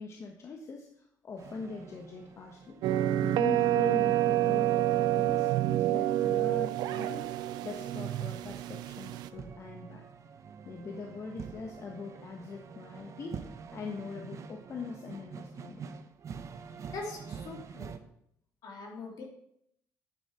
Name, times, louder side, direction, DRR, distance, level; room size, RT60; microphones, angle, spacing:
voice 1, 0.0-2.8 3.2-7.3 7.6-10.1 10.6-13.4 13.7-15.9, left 4 dB, 45° left, 2 dB, 1.2 m, -42 dB
sound 1, 1.4-18.0, right 6 dB, 50° right, 0.9 m, -47 dB
sound 2, 2.8-9.3, right 14 dB, 80° right, 0.5 m, -28 dB
voice 2, 16.9-17.9 18.6-19.2, left 3 dB, 65° left, -1 dB, 3.2 m, -42 dB
9.8 x 7.4 x 4.4 m, 0.74 s
cardioid pair, 95°, 7 cm